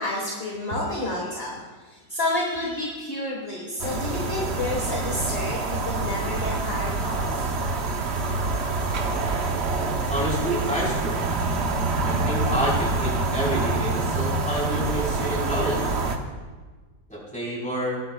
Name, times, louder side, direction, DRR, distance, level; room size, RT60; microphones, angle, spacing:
voice 1, 0.0-1.5 1.8-7.5, left 1 dB, 35° left, -2 dB, 1.7 m, -30 dB
sound 1, 3.8-16.2, right 3 dB, 45° right, 0.9 m, -26 dB
voice 2, 10.1-11.2 12.0-15.8 17.1-18.0, right 1 dB, 5° left, -6 dB, 4.2 m, -28 dB
19.5 x 11.0 x 2.3 m, 1.4 s
omnidirectional pair, 2.0 m